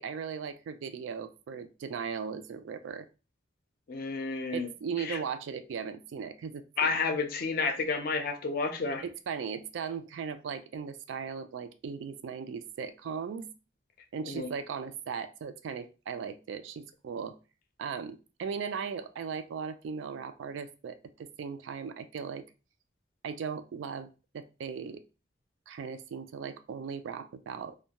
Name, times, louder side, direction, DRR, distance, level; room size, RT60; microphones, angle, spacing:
voice 1, 0.0-3.1 4.5-6.9 9.0-13.5 14.1-17.4 17.8-22.4 23.2-25.0 25.7-27.7, right 6 dB, 85° right, 11 dB, 0.3 m, -38 dB
voice 2, 3.9-4.7 5.0-5.2 6.8-9.0 14.3-14.5, left 4 dB, 50° left, 6 dB, 0.4 m, -30 dB
2.2 x 2.2 x 2.8 m, 0.32 s
head